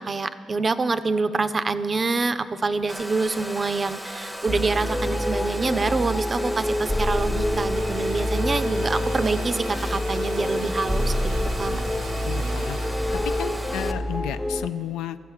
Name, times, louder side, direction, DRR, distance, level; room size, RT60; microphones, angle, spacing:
voice 1, 0.0-11.3 11.6-11.8, right 3 dB, 40° right, 12 dB, 0.5 m, -26 dB
Domestic sounds home sounds, 2.9-13.9, right 1 dB, 10° right, 0.8 m, -36 dB
sound 1, 4.5-14.7, left 1 dB, 15° left, 0.9 m, -27 dB
sound 2, 7.8-12.9, right 2 dB, 90° right, 0.7 m, -43 dB
voice 2, 12.2-12.8 13.2-15.2, left 11 dB, 75° left, 11 dB, 0.3 m, -32 dB
14.5 x 5.6 x 6.5 m, 2.1 s
hypercardioid pair, 45°, 0 cm